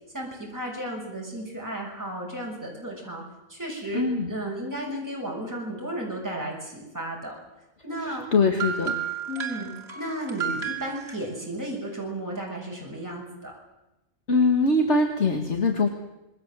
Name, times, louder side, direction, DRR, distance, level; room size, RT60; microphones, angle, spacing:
voice 1, 0.1-3.2 3.5-7.4 7.8-8.2 9.3-9.7 9.9-13.5, right 1 dB, 15° right, -2 dB, 6.5 m, -34 dB
voice 2, 3.9-4.3 8.0-9.0 14.3-15.9, left 3 dB, 55° left, 4 dB, 2.2 m, -22 dB
sound 1, 8.5-11.2, right 8 dB, 50° right, 3.2 m, -32 dB
26.5 x 22.5 x 7.7 m, 0.97 s
omnidirectional pair, 1.4 m